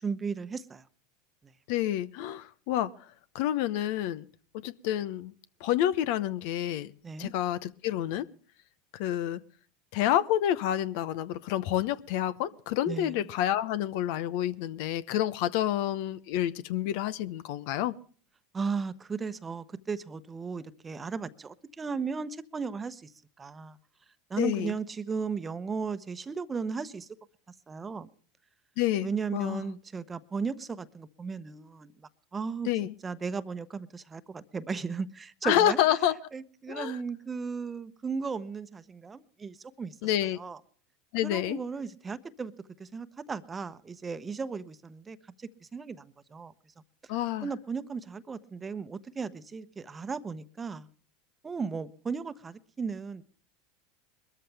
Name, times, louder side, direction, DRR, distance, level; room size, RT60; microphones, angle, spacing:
voice 1, 0.0-0.9 1.4-1.5 7.0-7.3 12.9-13.2 18.5-23.1 23.4-23.8 24.3-27.1 27.7-28.1 29.0-32.7 33.0-35.8 36.3-39.9 40.4-40.6 41.2-42.5 42.8-46.5 47.4-50.9 51.4-53.2, right 5 dB, 20° right, 1.0 m, -36 dB
voice 2, 1.7-2.9 3.3-4.3 4.6-5.3 5.6-6.9 7.2-8.3 8.9-9.4 9.9-17.9 24.4-24.8 28.8-29.7 32.6-33.0 35.4-36.2 36.7-37.0 40.0-40.4 41.1-41.6 47.1-47.5, left 12 dB, 65° left, 0.8 m, -28 dB
21.5 x 13.5 x 3.4 m
hypercardioid pair, 90°, 0 cm